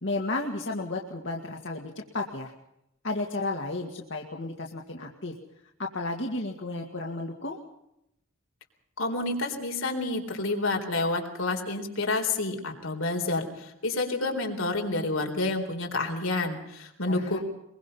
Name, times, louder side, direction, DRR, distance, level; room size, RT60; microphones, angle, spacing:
voice 1, 0.0-2.5 3.0-5.3 5.8-7.6 17.1-17.4, left 2 dB, 60° left, 1 dB, 2.1 m, -33 dB
voice 2, 9.0-17.4, left 2 dB, 85° left, 3 dB, 4.0 m, -29 dB
22.5 x 22.5 x 5.6 m, 0.82 s
head